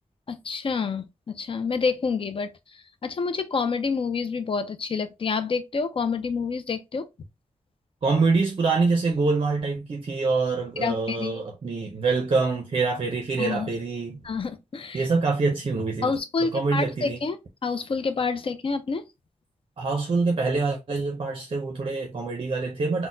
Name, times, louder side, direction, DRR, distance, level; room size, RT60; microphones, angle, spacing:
voice 1, 0.3-7.1 10.8-11.4 13.4-13.7 14.2-15.1 16.0-17.4 17.6-19.0, left 5 dB, 45° left, 0.4 m, -28 dB
voice 2, 8.0-14.2 14.9-16.1 16.4-17.2 19.8-23.1, right 4 dB, 45° right, 0.5 m, -25 dB
4.0 x 2.1 x 2.5 m
wide cardioid pair, 145°, 13 cm